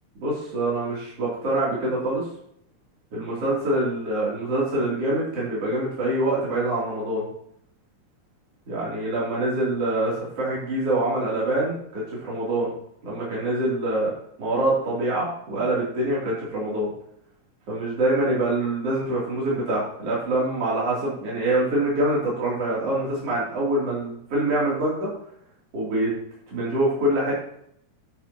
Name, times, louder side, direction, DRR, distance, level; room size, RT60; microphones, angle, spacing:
voice 1, 0.2-2.2 3.1-7.2 8.7-12.7 13.0-14.1 14.4-16.9 17.7-25.1 25.7-26.1 26.5-27.4, right 1 dB, 45° right, -6 dB, 4.2 m, -25 dB
10.0 x 9.5 x 3.0 m, 0.69 s
omnidirectional pair, 3.8 m